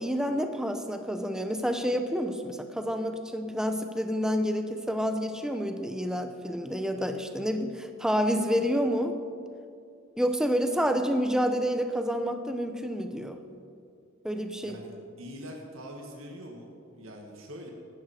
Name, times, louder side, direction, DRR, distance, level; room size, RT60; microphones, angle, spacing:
voice 1, 0.0-9.2 10.2-13.4 14.2-14.8, equal, 5° right, 6 dB, 0.8 m, -29 dB
voice 2, 15.2-17.7, equal, 75° right, 0 dB, 1.9 m, -43 dB
17.0 x 12.5 x 4.4 m, 2.4 s
head